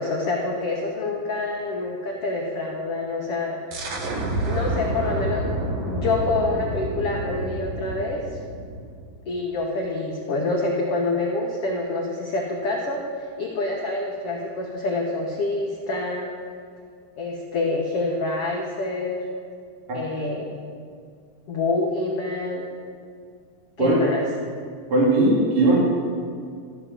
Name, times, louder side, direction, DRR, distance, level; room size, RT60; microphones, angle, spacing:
voice 1, 0.0-3.8 4.5-5.5 5.9-8.3 9.3-16.3 17.2-19.2 19.9-20.6 21.5-22.7 23.8-24.2, left 2 dB, 65° left, -1 dB, 1.5 m, -26 dB
sound 1, 3.7-9.2, right 1 dB, 80° right, 1.1 m, -29 dB
voice 2, 24.9-25.8, right 2 dB, 40° right, -4 dB, 2.8 m, -18 dB
14.0 x 8.1 x 7.5 m, 2.2 s
omnidirectional pair, 4.3 m